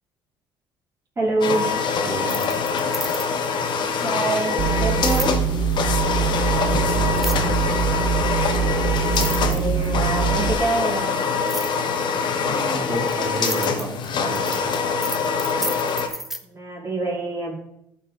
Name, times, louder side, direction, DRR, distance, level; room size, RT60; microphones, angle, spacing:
voice 1, 1.2-1.8 4.0-5.5 9.4-11.2 16.4-17.5, right 2 dB, 30° right, -6 dB, 2.4 m, -26 dB
sound 1, 1.4-16.1, left 5 dB, 55° left, 1.0 m, -24 dB
voice 2, 2.0-2.5 4.0-4.3 6.2-7.9 12.4-14.6, right 2 dB, 50° right, -3 dB, 2.9 m, -32 dB
sound 2, 2.2-3.5 5.0-5.3 7.1-7.6 8.5-8.6 9.0-10.1 11.5-11.8 12.6-16.4, equal, 5° right, 0.7 m, -32 dB
sound 3, 4.6-10.5, right 6 dB, 70° right, 0.6 m, -23 dB
12.0 x 4.3 x 3.7 m, 0.83 s
supercardioid pair, 75°, 9 cm